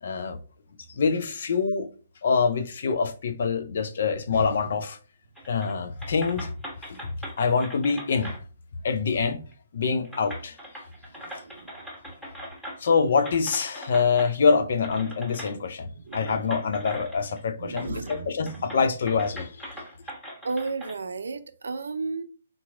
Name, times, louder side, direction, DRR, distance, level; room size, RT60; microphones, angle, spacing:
voice 1, 0.0-0.4 0.9-1.9 2.2-5.0 5.5-6.5 7.4-8.4 8.8-9.4 9.7-10.6 12.8-19.7, left 5 dB, 55° left, 0.6 m, -25 dB
sound 1, 5.3-5.7 6.0-8.4 9.5-9.6 10.0-12.9 13.2-14.3 14.8-15.5 16.1-17.4 17.7-18.2 18.5-20.9, equal, 5° left, 1.4 m, -41 dB
voice 2, 11.2-11.7 16.0-16.5 17.6-18.7 20.4-22.2, right 3 dB, 70° right, 0.5 m, -34 dB
3.9 x 2.9 x 3.6 m
figure-of-eight pair, 135°, 0 cm